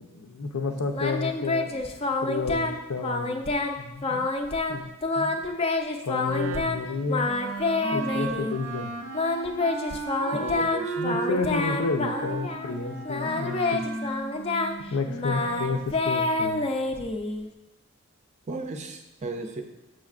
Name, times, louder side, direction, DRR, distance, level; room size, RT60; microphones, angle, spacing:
voice 1, 0.1-1.8 2.2-3.4 3.8-4.2 4.7-4.9 5.2-5.4 6.0-7.3 7.9-8.9 10.6-10.7 11.0-13.8 14.9-16.7, left 4 dB, 80° left, 6 dB, 0.6 m, -31 dB
Singing, 0.9-2.8 3.0-3.7 4.0-6.8 7.1-8.5 9.1-12.7 13.1-17.5, left 3 dB, 25° left, 0.4 m, -28 dB
Wind instrument woodwind instrument, 6.3-15.7, right 3 dB, 90° right, 0.6 m, -35 dB
voice 2, 10.3-11.0 18.5-19.6, right 2 dB, 30° right, 5 dB, 0.4 m, -35 dB
6.3 x 6.2 x 2.4 m, 0.99 s
head